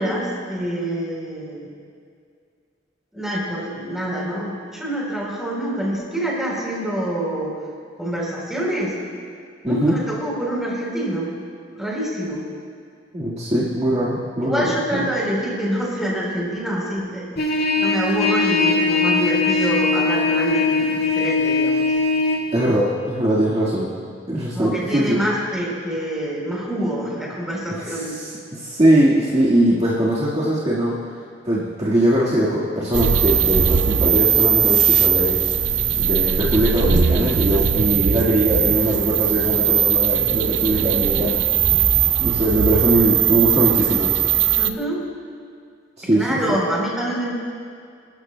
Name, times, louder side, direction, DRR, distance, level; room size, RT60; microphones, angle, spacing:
voice 1, 0.0-1.7 3.1-7.6 8.0-9.0 9.6-11.3 11.8-12.4 14.4-21.9 24.5-28.2 44.6-45.1 46.1-47.3, right 1 dB, ahead, -4 dB, 3.7 m, -26 dB
voice 2, 9.6-9.9 13.1-15.0 22.5-23.9 24.3-25.2 27.7-31.0 31.4-35.4 36.0-41.4 42.2-44.3 46.0-46.6, right 1 dB, 35° right, -7 dB, 1.7 m, -21 dB
Trumpet, 17.4-22.4, left 3 dB, 60° left, 2.4 m, -20 dB
sound 1, 32.9-44.7, right 8 dB, 75° right, 0.5 m, -19 dB
24.0 x 13.5 x 2.2 m, 2.2 s
head